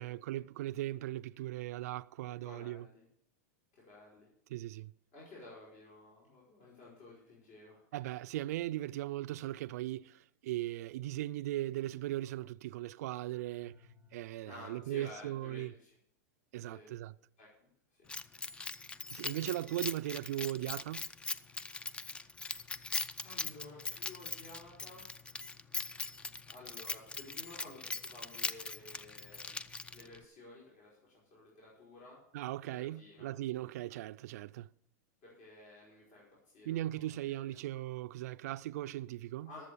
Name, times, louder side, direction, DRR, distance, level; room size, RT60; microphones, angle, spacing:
voice 1, 0.0-2.9 4.5-4.9 7.9-13.8 14.1-15.7 16.5-17.1 19.1-21.1 32.3-34.7 36.7-39.5, right 15 dB, 70° right, 0.4 m, -38 dB
voice 2, 2.3-3.0 3.8-4.3 5.1-7.8 14.4-15.9 16.6-16.9 17.4-18.0 19.2-19.6 22.1-22.3 23.2-25.1 26.4-29.6 29.9-32.2 32.7-33.3 35.2-36.3 36.5-37.4 39.5-39.6, left 2 dB, 55° left, 5.2 m, -53 dB
sound 1, 13.3-14.8, left 3 dB, 80° left, 5.9 m, -63 dB
Keys jangling, 18.1-30.2, left 3 dB, 10° left, 0.4 m, -41 dB
12.5 x 7.5 x 6.8 m
supercardioid pair, 135°, 9 cm